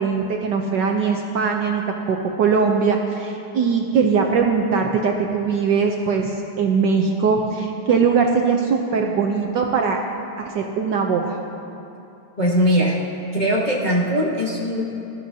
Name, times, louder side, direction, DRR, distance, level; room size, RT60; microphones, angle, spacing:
voice 1, 0.0-10.0 10.4-11.3, right 5 dB, 65° right, 1 dB, 1.2 m, -21 dB
voice 2, 12.4-13.0 13.3-14.8, equal, 30° left, -5 dB, 1.0 m, -20 dB
20.5 x 12.5 x 2.8 m, 2.8 s
omnidirectional pair, 2.4 m